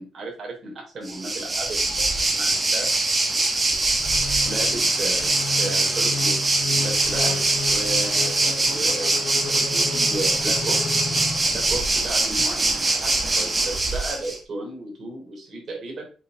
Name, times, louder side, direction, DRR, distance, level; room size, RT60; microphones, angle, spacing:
voice 1, 0.0-2.9 4.4-5.3 5.6-6.3 6.8-9.2 9.5-11.0 11.5-16.1, right 2 dB, 50° right, -1 dB, 3.4 m, -34 dB
Waves surf, 1.1-14.4, right 2 dB, 25° right, 1.4 m, -23 dB
sound 1, 4.0-11.9, left 4 dB, 50° left, 0.9 m, -33 dB
6.7 x 4.4 x 3.8 m, 0.37 s
cardioid pair, 95°, 0 cm